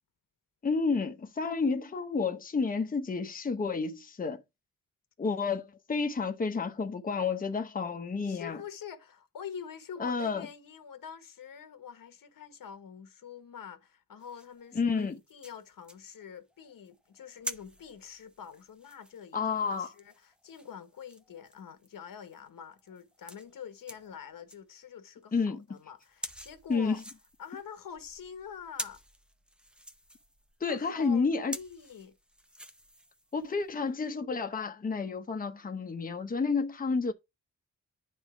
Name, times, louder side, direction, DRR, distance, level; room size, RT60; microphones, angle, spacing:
voice 1, 0.6-4.4 5.2-8.6 10.0-10.5 14.7-15.2 19.3-19.9 25.3-25.6 26.7-27.0 30.6-31.6 33.3-37.1, left 4 dB, 25° left, 0.9 m, -30 dB
voice 2, 8.2-27.0 27.4-29.0 30.7-32.1, left 7 dB, 85° left, 1.3 m, -46 dB
sound 1, 14.2-24.7 25.1-25.2 25.6-33.9, equal, 5° right, 0.6 m, -48 dB
10.0 x 3.6 x 4.9 m
wide cardioid pair, 150°, 33 cm